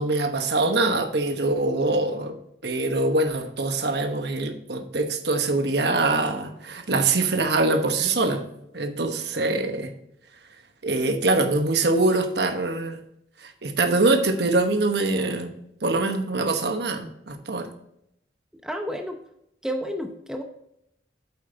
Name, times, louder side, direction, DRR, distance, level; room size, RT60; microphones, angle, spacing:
voice 1, 0.0-2.4 2.6-8.4 8.7-9.9 10.8-13.0 13.4-15.5 15.8-17.7, right 2 dB, 65° right, 6 dB, 1.1 m, -24 dB
voice 2, 18.6-19.2 19.6-20.4, equal, 5° right, 4 dB, 0.6 m, -30 dB
8.4 x 7.9 x 2.8 m, 0.77 s
head